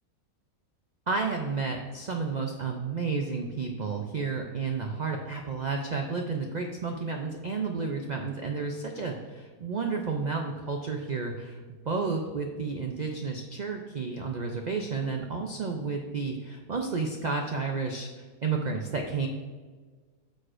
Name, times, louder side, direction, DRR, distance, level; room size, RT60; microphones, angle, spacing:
voice 1, 1.1-11.6 11.9-18.1 18.4-19.3, right 4 dB, 60° right, 2 dB, 0.4 m, -31 dB
9.1 x 6.4 x 2.5 m, 1.5 s
omnidirectional pair, 1.5 m